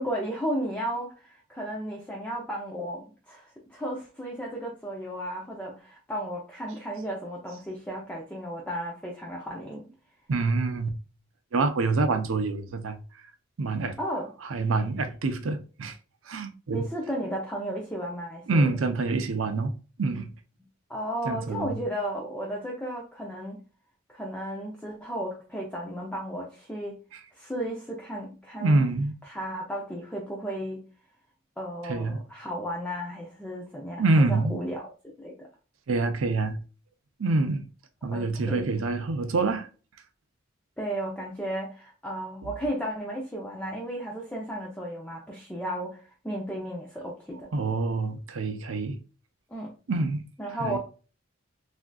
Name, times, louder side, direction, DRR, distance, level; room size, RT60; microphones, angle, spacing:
voice 1, 0.0-9.8 14.0-14.3 16.7-18.7 20.9-23.6 24.1-27.0 27.3-28.8 29.3-30.8 31.6-34.9 35.2-35.5 38.1-38.7 40.8-47.5 49.5-49.7 50.4-50.8, equal, 5° left, 0.5 m, -34 dB
voice 2, 10.3-10.9 11.5-13.0 13.6-14.0 14.5-16.0 16.3-16.8 18.5-19.7 20.0-20.3 21.3-21.8 27.1-27.2 28.6-29.1 31.9-32.2 34.0-34.6 35.9-36.6 37.2-37.7 38.0-39.7 47.5-49.0 49.9-50.2 50.6-50.8, right 3 dB, 85° right, 0.5 m, -26 dB
3.5 x 2.5 x 2.2 m
head